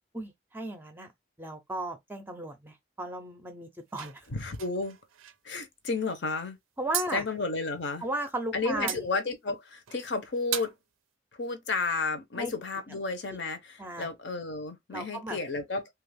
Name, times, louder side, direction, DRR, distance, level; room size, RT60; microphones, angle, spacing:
voice 1, 0.1-1.1 1.4-4.2 6.8-7.2 8.0-9.1 12.4-12.5 13.3-13.4 13.8-14.1 14.9-15.4, right 1 dB, 10° right, 0.5 m, -36 dB
sound 1, 3.9-5.4 6.9-7.1 8.8-9.0 9.9-10.1 10.5-10.8, right 11 dB, 85° right, 0.4 m, -36 dB
voice 2, 4.3-5.0 5.4-6.6 7.1-8.1 8.5-10.7 11.4-15.9, left 3 dB, 60° left, 0.7 m, -32 dB
2.9 x 2.4 x 3.3 m
head